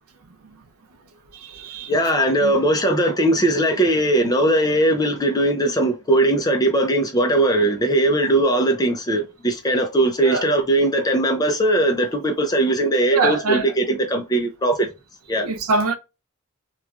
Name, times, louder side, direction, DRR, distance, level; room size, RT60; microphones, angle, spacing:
voice 1, 1.3-1.9 2.4-2.5 10.2-10.4 13.1-13.7 15.4-16.0, right 3 dB, 75° right, 0.5 m, -23 dB
voice 2, 1.9-14.9 15.3-15.5, right 1 dB, 15° left, 0.4 m, -19 dB
3.0 x 2.2 x 2.3 m
head